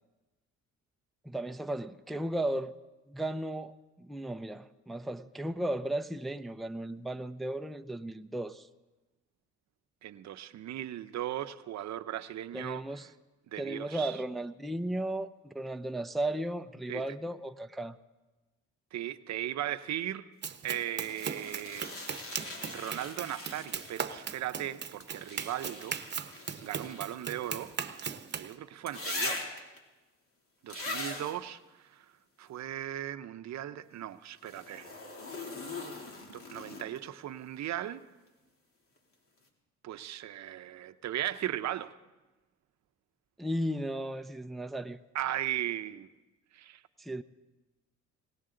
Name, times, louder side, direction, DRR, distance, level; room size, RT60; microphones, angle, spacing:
voice 1, 1.2-2.8 3.1-8.7 12.5-13.1 13.6-18.0 43.4-45.0 47.0-47.2, right 1 dB, ahead, 0.5 m, -35 dB
voice 2, 10.0-12.8 13.5-14.2 16.9-17.0 18.9-20.3 20.6-21.9 22.7-26.0 26.6-27.7 28.3-29.5 30.6-31.6 31.9-32.1 32.4-34.9 36.3-38.1 39.8-42.0 45.1-46.1 46.5-46.8, right 12 dB, 65° right, 0.7 m, -37 dB
Run, 20.4-28.5, right 7 dB, 35° right, 0.9 m, -39 dB
sound 1, 21.0-24.3 25.0-28.2 28.9-29.8 30.7-31.4 34.4-37.1 39.0-39.1, left 2 dB, 45° left, 2.8 m, -41 dB
19.5 x 17.5 x 3.8 m
cardioid pair, 90°, 30 cm